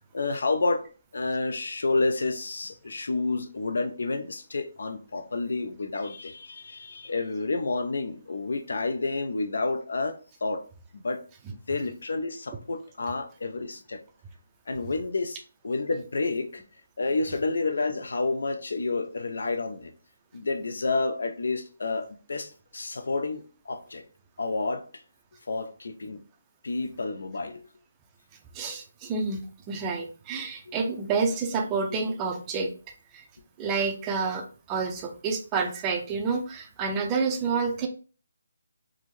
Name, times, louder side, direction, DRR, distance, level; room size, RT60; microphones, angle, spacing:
voice 1, 0.1-0.8 1.1-10.6 11.0-11.2 11.7-14.0 14.7-15.4 15.6-16.6 17.0-19.9 20.3-24.0 24.4-24.8 25.5-26.2 26.6-27.6 30.7-30.8, left 3 dB, 75° left, 0.5 m, -29 dB
voice 2, 28.5-32.7 33.1-33.2 33.6-37.9, right 4 dB, 20° right, 0.5 m, -29 dB
3.5 x 2.1 x 3.1 m
hypercardioid pair, 160°, 0 cm